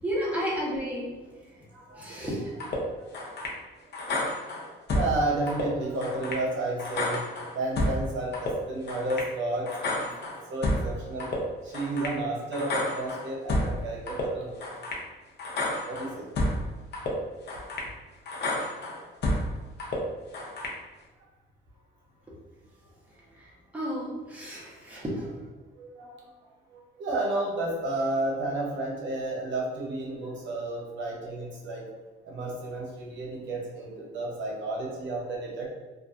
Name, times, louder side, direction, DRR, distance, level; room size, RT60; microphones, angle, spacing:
voice 1, 0.0-1.2 1.5-1.7 1.9-2.5 23.3-25.5, equal, 5° right, -7 dB, 1.0 m, -32 dB
voice 2, 1.7-2.2 3.0-3.1 4.1-4.2 4.9-11.3 11.6-14.6 15.9-16.3 25.8-26.3 26.7-31.8 32.2-35.7, right 2 dB, 70° right, -2 dB, 0.7 m, -32 dB
sound 1, 2.6-2.8 3.1-3.6 3.9-5.1 5.5-5.7 6.0-6.4 6.8-8.0 8.3-8.5 8.9-9.3 9.7-10.9 11.2-11.4 11.7-12.2 12.5-13.7 14.1-14.3 14.6-15.0 15.4-16.6 16.9-17.1 17.5-17.9 18.3-19.5 19.8-20.0 20.3-20.8, left 1 dB, 60° left, 0.7 m, -30 dB
2.7 x 2.3 x 2.4 m, 1.2 s
cardioid pair, 90°, 20 cm